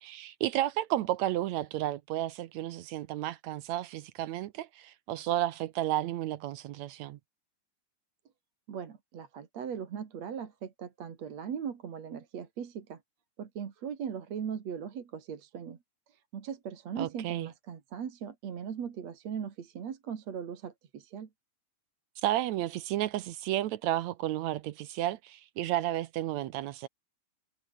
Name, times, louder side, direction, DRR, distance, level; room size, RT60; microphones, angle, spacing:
voice 1, 0.0-7.2 17.0-17.5 22.2-26.9, right 13 dB, 75° right, 1.8 m, -32 dB
voice 2, 8.7-13.0 13.4-15.8 16.1-21.3, right 7 dB, 55° right, 3.2 m, -39 dB
omnidirectional pair, 3.9 m